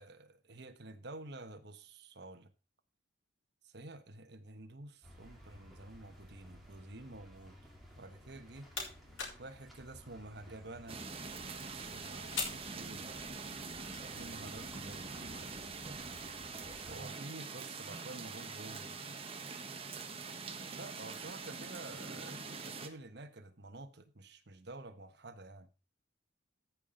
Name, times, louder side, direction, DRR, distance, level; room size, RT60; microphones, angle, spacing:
voice 1, 0.0-2.5 3.6-7.6 8.0-8.7 9.4-11.0 11.9-13.1 14.1-15.5 16.9-19.0 20.3-25.7, right 2 dB, 55° right, 1.2 m, -50 dB
sound 1, 5.0-17.0, equal, ahead, 2.5 m, -56 dB
sound 2, 8.2-13.5, left 4 dB, 75° left, 4.1 m, -46 dB
sound 3, 10.9-22.9, right 4 dB, 30° right, 1.1 m, -44 dB
14.0 x 5.8 x 5.1 m
head